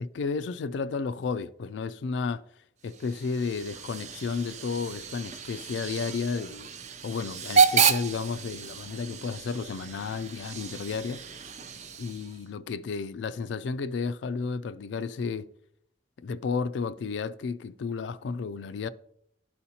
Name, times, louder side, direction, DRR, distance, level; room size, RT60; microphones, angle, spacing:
voice 1, 0.0-2.4 2.8-6.7 7.0-11.2 12.0-15.5 16.2-18.9, left 5 dB, 85° left, 0.3 m, -32 dB
Hiss / Train / Alarm, 2.8-12.5, right 6 dB, 40° right, 0.5 m, -30 dB
12.5 x 4.2 x 2.8 m
head